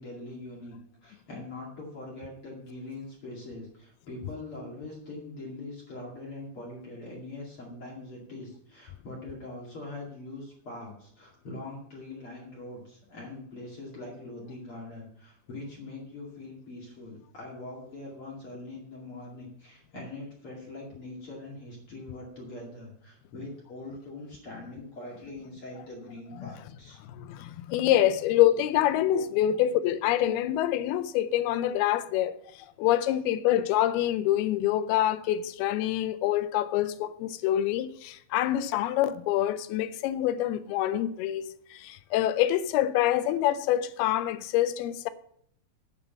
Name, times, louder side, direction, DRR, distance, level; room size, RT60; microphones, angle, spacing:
voice 1, 0.0-27.0 29.5-29.6, left 2 dB, 40° left, 2.8 m, -42 dB
voice 2, 27.2-32.4 32.8-45.1, left 12 dB, 85° left, 2.6 m, -26 dB
9.0 x 6.8 x 7.1 m
omnidirectional pair, 4.4 m